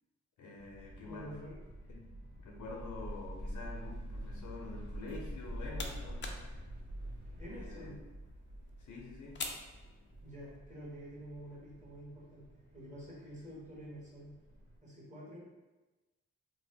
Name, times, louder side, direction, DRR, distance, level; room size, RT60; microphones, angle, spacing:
voice 1, 0.4-1.3 1.9-2.0 2.4-6.3 7.5-7.9 8.8-9.4, left 3 dB, 80° left, -1 dB, 0.7 m, -47 dB
sound 1, 0.6-14.8, equal, 70° right, 1.2 m, -47 dB
voice 2, 1.0-1.6 7.4-8.0 10.2-14.3 14.8-15.4, equal, 25° right, -6 dB, 1.3 m, -48 dB
sound 2, 5.2-10.6, left 4 dB, 40° left, 0.4 m, -48 dB
2.9 x 2.1 x 3.4 m, 1.1 s
cardioid pair, 75°, 30 cm